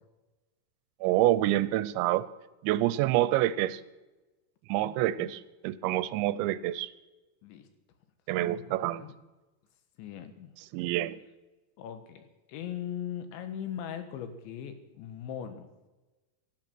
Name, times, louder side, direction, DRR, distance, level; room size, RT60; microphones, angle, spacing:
voice 1, 1.0-2.3 2.6-3.8 4.7-6.9 8.3-9.0 10.7-11.2, right 14 dB, 85° right, 16 dB, 2.9 m, -27 dB
voice 2, 4.8-5.3 7.4-7.7 8.4-9.1 10.0-10.5 11.8-15.7, left 9 dB, 80° left, 9 dB, 3.7 m, -40 dB
17.5 x 13.0 x 6.1 m, 1.1 s
omnidirectional pair, 5.2 m